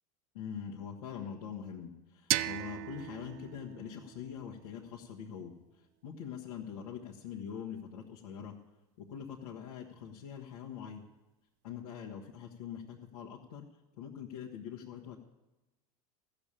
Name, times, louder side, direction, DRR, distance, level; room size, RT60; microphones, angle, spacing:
voice 1, 0.3-5.5 6.0-8.5 9.1-11.0 11.6-13.7 14.0-15.2, left 8 dB, 85° left, -3 dB, 1.5 m, -43 dB
sound 1, 2.3-5.1, right 16 dB, 70° right, 0.5 m, -37 dB
14.5 x 6.9 x 8.9 m, 1.0 s
hypercardioid pair, 100°, 19 cm